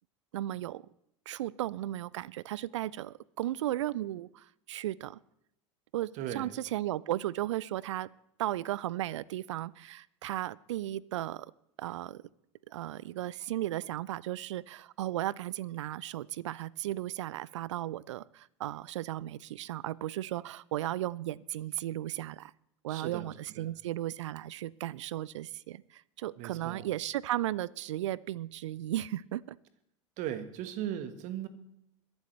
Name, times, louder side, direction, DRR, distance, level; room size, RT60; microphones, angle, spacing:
voice 1, 0.3-0.8 1.3-5.2 5.9-8.1 8.4-11.5 11.8-12.2 12.7-22.5 22.8-29.6, right 14 dB, 70° right, 23 dB, 0.5 m, -35 dB
voice 2, 6.1-6.6 22.9-23.7 26.4-26.8 30.2-31.5, right 11 dB, 50° right, 12 dB, 1.5 m, -38 dB
22.0 x 11.5 x 3.3 m, 0.78 s
figure-of-eight pair, 75°, 16 cm